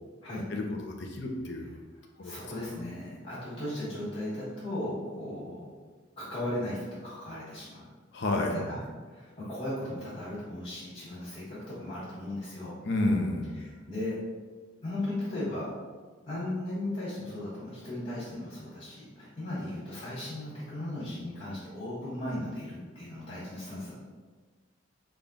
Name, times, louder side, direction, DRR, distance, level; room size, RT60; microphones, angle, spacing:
voice 1, 0.5-1.8 2.2-2.3 8.1-8.6 12.8-13.6, left 2 dB, 60° left, 2 dB, 0.5 m, -30 dB
voice 2, 2.2-5.7 6.2-7.9 8.5-12.7 13.6-14.1 14.8-15.7 16.3-24.0, left 1 dB, 30° left, -10 dB, 1.3 m, -36 dB
3.5 x 2.3 x 3.9 m, 1.4 s
head